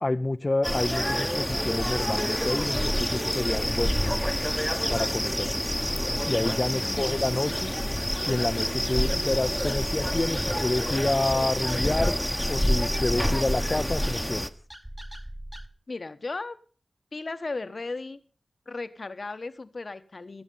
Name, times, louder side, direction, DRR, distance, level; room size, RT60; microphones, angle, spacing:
voice 1, 0.0-4.3 4.9-5.5 6.3-7.7 8.3-12.1 12.5-14.5, left 2 dB, 40° left, 7 dB, 0.6 m, -28 dB
sound 1, 0.6-14.5, equal, 5° left, 1.1 m, -27 dB
voice 2, 6.7-7.2 15.9-16.6 17.1-18.2 18.7-20.4, left 3 dB, 60° left, 11 dB, 1.1 m, -36 dB
sound 2, 12.7-15.7, right 1 dB, 15° right, 1.3 m, -41 dB
18.0 x 7.2 x 5.5 m, 0.41 s
cardioid pair, 40°, 0 cm